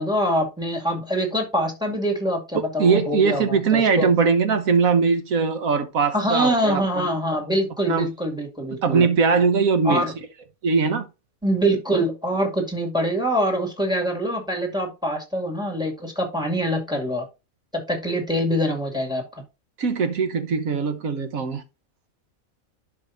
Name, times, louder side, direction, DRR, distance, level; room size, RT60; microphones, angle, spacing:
voice 1, 0.0-4.1 6.1-9.1 9.8-10.1 11.4-17.3 17.7-19.2, equal, 5° right, 2.3 m, -24 dB
voice 2, 2.5-7.1 7.9-8.1 8.7-10.0 10.6-11.1 19.8-21.6, right 5 dB, 85° right, 1.5 m, -21 dB
11.5 x 5.4 x 2.6 m
omnidirectional pair, 1.4 m